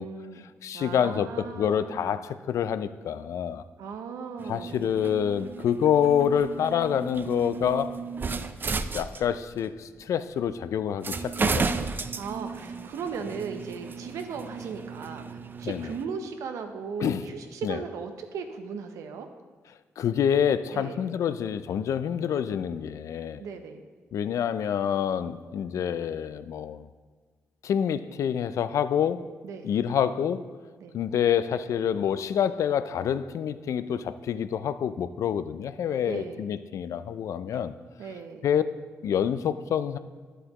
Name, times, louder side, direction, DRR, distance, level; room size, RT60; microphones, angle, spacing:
voice 1, 0.0-2.2 3.8-4.9 12.2-19.3 20.7-21.0 23.4-23.8 29.4-29.7 30.8-31.0 36.0-36.5 38.0-38.5, right 5 dB, 90° right, 0.7 m, -37 dB
voice 2, 0.6-3.6 4.5-8.0 8.9-11.9 15.6-15.9 17.0-17.2 17.6-17.8 20.0-23.5 24.1-26.9 27.6-29.2 29.6-30.5 30.9-37.7 38.4-38.6 39.0-40.0, left 8 dB, 75° left, 0.4 m, -27 dB
sound 1, 4.4-9.6 10.4-10.5 11.0-16.0, right 4 dB, 40° right, 0.5 m, -34 dB
11.0 x 7.9 x 3.0 m
cardioid pair, 65°, 5 cm